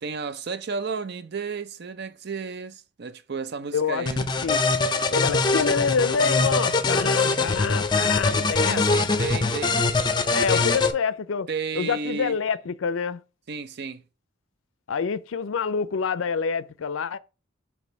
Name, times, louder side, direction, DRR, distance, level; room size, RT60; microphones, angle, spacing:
voice 1, 0.0-4.2 8.6-9.8 10.5-10.7 11.5-12.4 13.5-14.0, right 5 dB, 55° right, 0.5 m, -32 dB
voice 2, 3.7-4.7 5.1-8.8 10.3-11.5 11.7-13.2 14.9-17.2, left 5 dB, 80° left, 0.5 m, -27 dB
sound 1, 4.1-10.9, left 3 dB, 20° left, 0.5 m, -23 dB
6.2 x 3.0 x 5.2 m
head